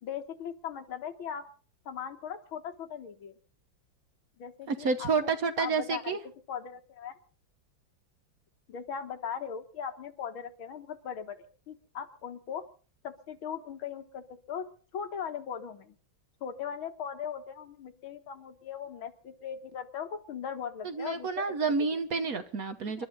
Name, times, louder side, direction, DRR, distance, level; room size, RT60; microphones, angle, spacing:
voice 1, 0.0-1.4 1.9-3.4 4.4-5.3 5.6-6.2 6.5-7.2 8.7-12.6 13.0-14.7 14.9-16.0 16.4-21.5 21.9-22.0 23.0-23.1, left 8 dB, 80° left, 7 dB, 2.3 m, -39 dB
voice 2, 4.7-6.2 20.8-23.1, right 4 dB, 50° right, 10 dB, 1.3 m, -29 dB
28.5 x 12.0 x 4.0 m, 0.41 s
omnidirectional pair, 2.2 m